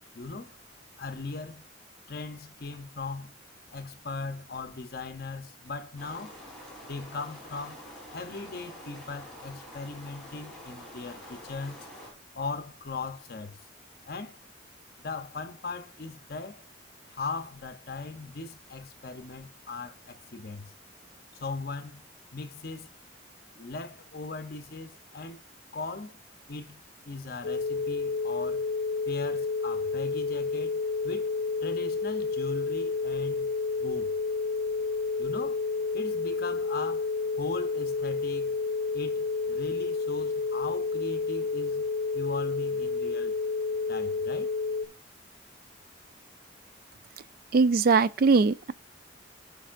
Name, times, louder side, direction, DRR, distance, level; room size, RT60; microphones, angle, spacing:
voice 1, 0.1-0.6 1.0-1.6 2.1-3.3 3.7-6.4 6.8-7.9 8.1-11.9 12.3-13.6 14.1-14.4 15.0-16.6 17.1-20.7 21.4-22.0 22.3-22.9 23.5-25.4 25.7-26.2 26.5-28.6 29.1-31.3 31.6-33.5 33.8-34.1 35.2-35.6 35.9-37.1 37.4-38.6 38.9-41.8 42.1-43.4 43.9-44.5, left 3 dB, 55° left, 0.7 m, -39 dB
sound 1, 6.0-12.1, equal, 5° left, 3.6 m, -47 dB
sound 2, 27.4-44.9, left 4 dB, 90° left, 0.7 m, -30 dB
voice 2, 47.5-48.7, right 4 dB, 50° right, 0.4 m, -21 dB
15.0 x 5.4 x 2.5 m
head